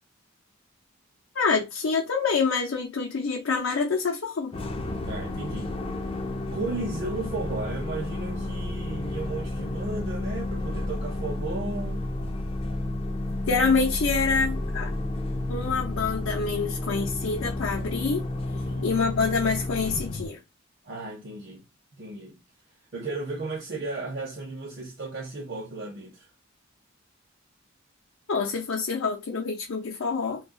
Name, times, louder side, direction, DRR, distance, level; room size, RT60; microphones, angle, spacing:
voice 1, 1.3-4.5 13.5-14.9 15.5-18.2 18.8-20.4 28.3-30.4, left 4 dB, 85° left, 0.5 m, -26 dB
sound 1, 4.5-20.3, left 2 dB, 30° left, 0.3 m, -31 dB
voice 2, 5.0-5.7 6.5-12.1 18.7-19.0 20.8-21.6 21.9-22.4 22.9-26.3, right 2 dB, 55° right, 0.7 m, -34 dB
2.3 x 2.3 x 3.5 m
head